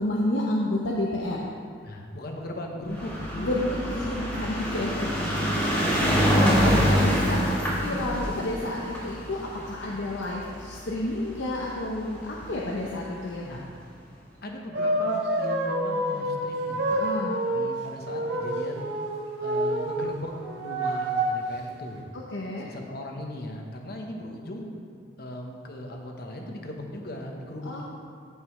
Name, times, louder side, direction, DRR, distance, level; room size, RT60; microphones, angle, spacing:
voice 1, 0.0-1.4 3.4-5.1 6.4-9.4 9.7-13.6 16.9-17.4 22.1-22.7 27.6-27.8, left 1 dB, 75° left, -3 dB, 0.8 m, -30 dB
voice 2, 1.8-3.6 5.2-6.9 13.4-13.6 14.4-16.9 17.5-18.8 19.4-20.3 20.6-22.1 22.6-24.7 25.2-27.8, left 1 dB, 55° left, 1 dB, 1.1 m, -38 dB
sound 1, 2.9-11.4 12.2-12.3 12.5-12.6 12.8-12.9, equal, 10° left, 2.0 m, -25 dB
sound 2, 14.7-17.7 18.0-20.1 20.4-21.4 22.0-22.1, right 1 dB, 70° right, 1.3 m, -28 dB
15.0 x 5.4 x 3.2 m, 2.2 s
head